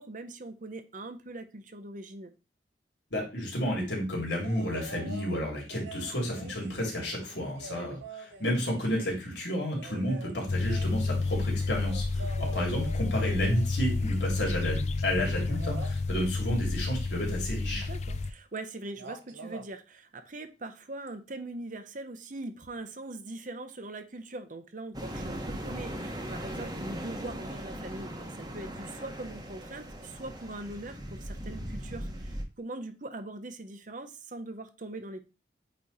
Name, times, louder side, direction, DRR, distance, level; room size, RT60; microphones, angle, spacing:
voice 1, 0.0-2.3 7.7-8.0 12.4-12.5 17.7-35.2, right 2 dB, 45° right, 9 dB, 0.8 m, -42 dB
voice 2, 3.1-17.9, equal, 70° left, -1 dB, 3.1 m, -31 dB
sound 1, 4.4-5.3 5.7-9.2 9.7-14.6 15.5-16.0 17.8-17.9 18.2-18.7 19.0-19.7 21.1-21.2, right 3 dB, 75° right, 1.1 m, -46 dB
sound 2, 10.5-18.3, left 3 dB, 40° left, 0.4 m, -30 dB
sound 3, 24.9-32.4, equal, 20° right, 1.1 m, -39 dB
8.5 x 3.1 x 4.2 m, 0.29 s
head